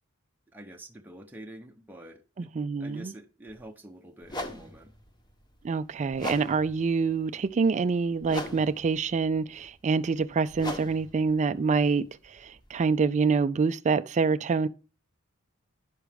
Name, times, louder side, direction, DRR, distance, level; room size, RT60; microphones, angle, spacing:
voice 1, 0.5-2.5 2.8-4.9, right 1 dB, 10° right, 0.7 m, -47 dB
voice 2, 2.4-3.1 5.6-14.7, right 4 dB, 35° right, 0.4 m, -26 dB
sound 1, 3.5-3.6 4.2-13.1, left 1 dB, 20° left, 1.0 m, -41 dB
10.5 x 6.1 x 3.4 m
head